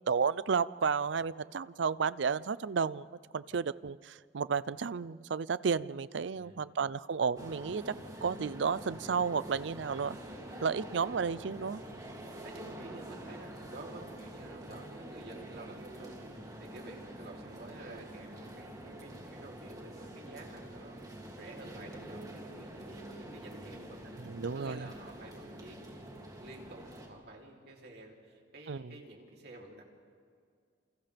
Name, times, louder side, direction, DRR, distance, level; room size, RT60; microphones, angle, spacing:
voice 1, 0.1-3.1 3.3-7.9 8.2-10.2 10.6-11.8 24.2-24.9 28.7-28.8, right 5 dB, 80° right, 18 dB, 0.5 m, -32 dB
voice 2, 6.3-6.7 11.8-12.1 12.4-21.0 21.4-24.0 24.5-29.8, right 2 dB, 60° right, -1 dB, 3.3 m, -50 dB
sound 1, 7.4-27.1, right 1 dB, 20° right, 2.7 m, -46 dB
29.5 x 28.0 x 3.5 m, 2.2 s
head